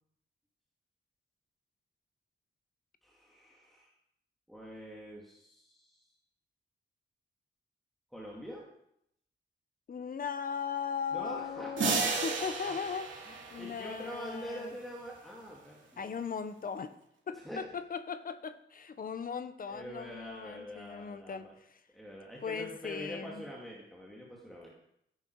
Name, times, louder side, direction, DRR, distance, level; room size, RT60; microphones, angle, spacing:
voice 1, 3.0-3.9 4.5-6.1 8.1-8.6 11.1-12.8 13.3-16.1 17.3-17.6 19.7-21.5 21.9-24.7, equal, ahead, -3 dB, 2.3 m, -45 dB
voice 2, 9.9-14.7 16.0-16.9 17.3-21.5 22.4-23.4, left 6 dB, 45° left, 11 dB, 0.9 m, -38 dB
sound 1, 11.8-14.5, right 4 dB, 70° right, 2.7 m, -34 dB
15.0 x 10.5 x 4.7 m, 0.76 s
wide cardioid pair, 165°, 21 cm